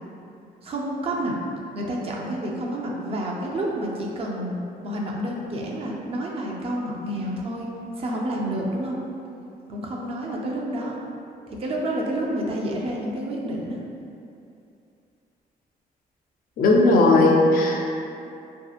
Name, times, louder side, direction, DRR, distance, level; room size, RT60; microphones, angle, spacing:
voice 1, 0.6-1.4 1.7-7.7 8.0-9.0 9.7-11.0 11.5-13.8, right 1 dB, 40° right, -2 dB, 0.4 m, -29 dB
voice 2, 16.6-17.9, left 2 dB, 65° left, -1 dB, 0.4 m, -17 dB
2.7 x 2.4 x 2.4 m, 2.6 s
cardioid pair, 130°, 16 cm